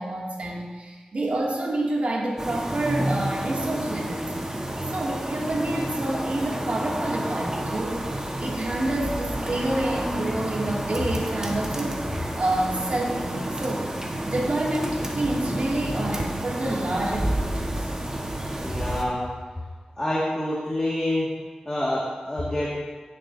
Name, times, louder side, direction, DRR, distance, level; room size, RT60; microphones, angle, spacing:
voice 1, 0.0-4.2 4.9-8.1 8.4-12.0 12.4-13.9 14.3-17.9, right 1 dB, 65° right, -4 dB, 2.5 m, -28 dB
sound 1, 2.4-19.0, right 1 dB, 25° right, 1.5 m, -30 dB
voice 2, 18.6-19.2 20.0-21.3 21.7-22.7, left 1 dB, 20° left, -6 dB, 2.1 m, -27 dB
16.0 x 7.5 x 2.8 m, 1.3 s
wide cardioid pair, 75°, 2 cm